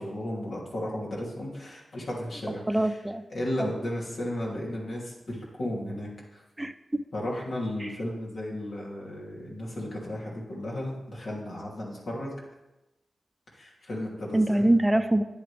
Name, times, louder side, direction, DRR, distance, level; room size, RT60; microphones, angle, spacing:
voice 1, 0.0-3.0 3.3-6.4 7.1-12.3 13.5-14.7, left 1 dB, 75° left, -4 dB, 3.0 m, -34 dB
voice 2, 2.7-3.2 3.6-3.7 6.6-7.0 7.8-7.9 14.3-15.2, right 1 dB, 15° right, 9 dB, 0.7 m, -24 dB
9.8 x 8.5 x 3.5 m, 0.98 s
cardioid pair, 50°, 0 cm